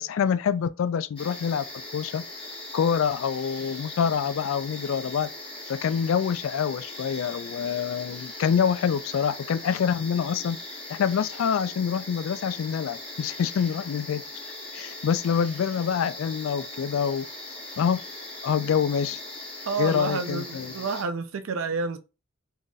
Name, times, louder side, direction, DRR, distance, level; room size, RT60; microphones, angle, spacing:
voice 1, 0.0-1.6 1.9-2.2 2.7-5.3 5.7-10.6 10.9-14.2 14.7-17.3 17.8-18.0 18.4-19.2 19.8-20.7, left 7 dB, 75° left, 0.3 m, -26 dB
sound 1, 1.2-21.0, left 1 dB, 25° left, 1.3 m, -40 dB
voice 2, 19.7-22.0, right 4 dB, 80° right, 0.5 m, -29 dB
3.8 x 2.5 x 2.3 m
head